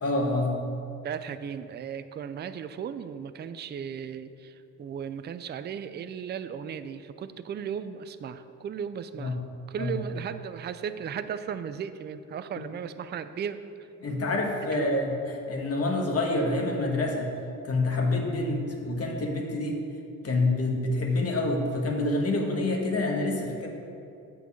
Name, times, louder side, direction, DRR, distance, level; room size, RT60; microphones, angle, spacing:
voice 1, 0.0-0.6 9.2-9.4 9.8-10.0 14.0-15.1 15.5-17.3 17.6-19.8 20.2-23.7, left 2 dB, 45° left, 1 dB, 1.5 m, -27 dB
voice 2, 1.0-9.4 9.7-13.6 14.7-14.9, right 8 dB, 30° right, 11 dB, 0.4 m, -36 dB
8.0 x 4.6 x 7.1 m, 2.7 s
cardioid pair, 95°, 34 cm